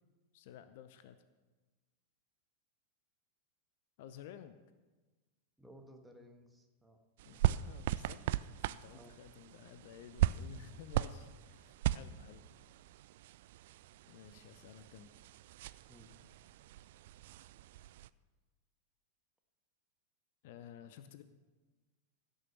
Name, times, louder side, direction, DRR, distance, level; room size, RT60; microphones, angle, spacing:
voice 1, 0.3-1.2 4.0-4.6 7.2-8.2 8.5-12.4 14.1-15.1 20.4-21.2, left 9 dB, 50° left, 11 dB, 0.7 m, -53 dB
voice 2, 5.6-7.0 7.4-7.5 8.9-9.1 15.9-16.1, equal, 5° right, 3 dB, 1.6 m, -58 dB
sound 1, 7.2-18.1, right 13 dB, 55° right, 0.3 m, -38 dB
16.0 x 6.4 x 6.8 m, 1.2 s
figure-of-eight pair, 90°, 0 cm